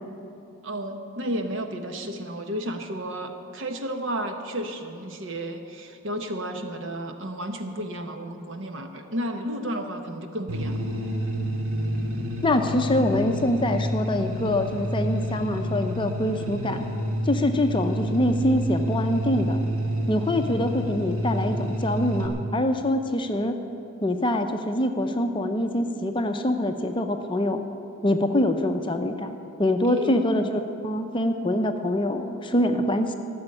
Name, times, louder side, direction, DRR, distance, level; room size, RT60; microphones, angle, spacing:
voice 1, 0.6-10.9 29.9-30.5, equal, 60° right, 5 dB, 1.1 m, -32 dB
sound 1, 10.5-22.3, equal, 85° right, 1.9 m, -29 dB
voice 2, 12.4-16.8 17.3-19.6 20.1-23.6 24.0-27.6 28.0-33.1, left 1 dB, 25° left, 6 dB, 0.6 m, -24 dB
14.0 x 7.1 x 9.8 m, 2.6 s
head